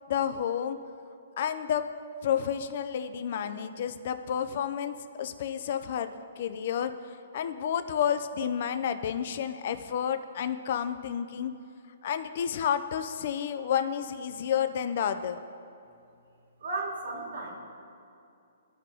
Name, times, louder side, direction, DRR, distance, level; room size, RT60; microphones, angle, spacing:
voice 1, 0.1-0.8 1.4-1.8 2.2-6.9 7.3-11.5 12.0-15.4, left 8 dB, 45° left, 10 dB, 0.3 m, -30 dB
voice 2, 16.6-17.6, right 3 dB, 75° right, 0 dB, 1.9 m, -34 dB
14.5 x 5.3 x 2.7 m, 2.5 s
hypercardioid pair, 165°, 0 cm